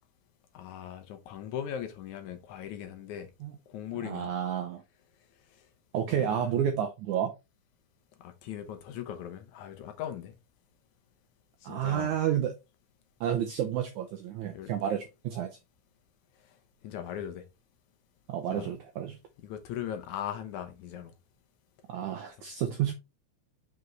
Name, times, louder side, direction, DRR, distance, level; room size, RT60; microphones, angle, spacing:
voice 1, 0.5-3.3 3.7-4.3 5.5-5.6 6.1-6.5 8.2-10.3 11.6-12.2 14.4-14.7 16.8-17.4 18.5-18.7 19.4-21.1, left 10 dB, 75° left, 1.8 m, -39 dB
voice 2, 4.0-4.8 5.9-7.3 11.6-12.5 13.2-15.6 18.3-19.2 21.9-22.9, right 9 dB, 80° right, 1.7 m, -30 dB
6.2 x 4.8 x 3.1 m
omnidirectional pair, 4.2 m